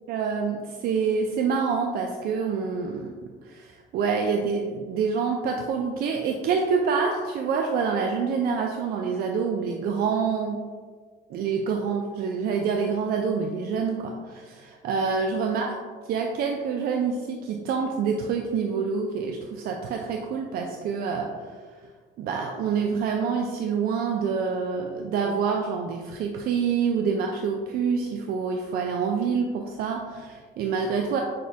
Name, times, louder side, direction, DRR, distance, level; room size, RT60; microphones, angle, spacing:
voice 1, 0.1-3.1 3.5-10.6 11.3-15.7 16.1-21.3 22.2-31.2, right 5 dB, 65° right, 2 dB, 0.4 m, -27 dB
6.2 x 2.3 x 2.7 m, 1.5 s
cardioid pair, 110°, 17 cm